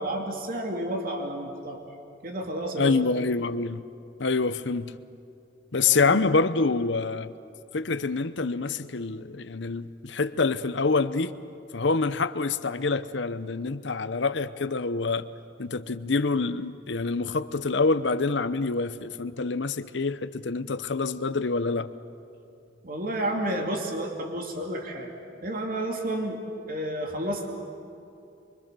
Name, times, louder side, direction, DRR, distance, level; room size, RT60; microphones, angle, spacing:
voice 1, 0.0-1.8 2.2-3.0 5.9-6.2 22.8-25.1 25.4-26.4 26.7-27.5, right 1 dB, 50° right, 2 dB, 2.6 m, -31 dB
voice 2, 2.8-3.8 4.2-4.9 5.7-7.3 7.7-11.3 11.7-15.3 15.6-21.9, left 4 dB, 65° left, 13 dB, 0.8 m, -26 dB
25.5 x 24.5 x 6.9 m, 2.6 s
head